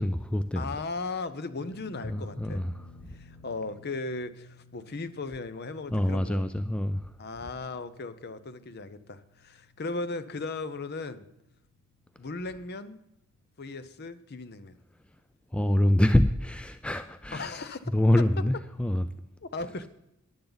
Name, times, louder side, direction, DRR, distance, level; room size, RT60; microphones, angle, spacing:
voice 1, 0.0-0.8 2.0-2.7 5.9-7.1 15.5-17.6 17.9-19.1, left 1 dB, 5° left, 10 dB, 0.3 m, -25 dB
voice 2, 0.6-2.6 3.1-6.5 7.2-11.3 12.2-13.0 13.6-14.8 17.3-17.9 18.2-18.3 19.4-19.9, left 3 dB, 50° left, 13 dB, 0.7 m, -37 dB
sound 1, 1.6-13.8 14.1-14.3 16.0-16.1, left 4 dB, 75° left, 1.0 m, -56 dB
14.0 x 10.5 x 4.0 m, 0.85 s
head